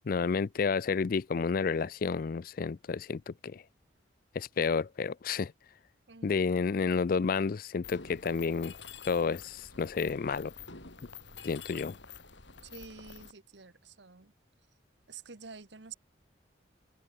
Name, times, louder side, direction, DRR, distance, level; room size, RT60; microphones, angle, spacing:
voice 1, 0.1-3.6 4.3-5.5 6.2-8.8 9.0-10.5 11.4-12.0, left 5 dB, 50° left, 0.4 m, -30 dB
voice 2, 6.1-6.4 12.7-14.3 15.1-15.9, right 5 dB, 70° right, 1.3 m, -49 dB
Mechanisms, 7.8-13.3, left 6 dB, 75° left, 5.4 m, -48 dB
head